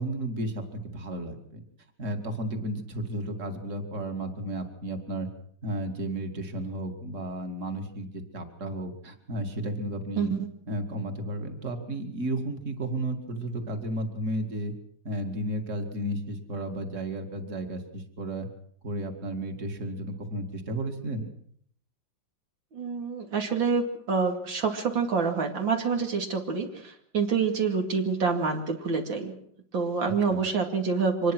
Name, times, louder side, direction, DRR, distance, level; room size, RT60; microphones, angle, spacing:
voice 1, 0.0-1.6 2.0-5.3 5.6-10.4 10.7-14.7 15.0-18.5 18.8-21.3 30.3-30.4, right 1 dB, 40° right, 4 dB, 2.7 m, -33 dB
voice 2, 10.2-10.5 22.7-29.3 29.7-31.3, right 5 dB, 90° right, 3 dB, 3.3 m, -27 dB
25.0 x 20.0 x 6.2 m, 0.64 s
omnidirectional pair, 2.0 m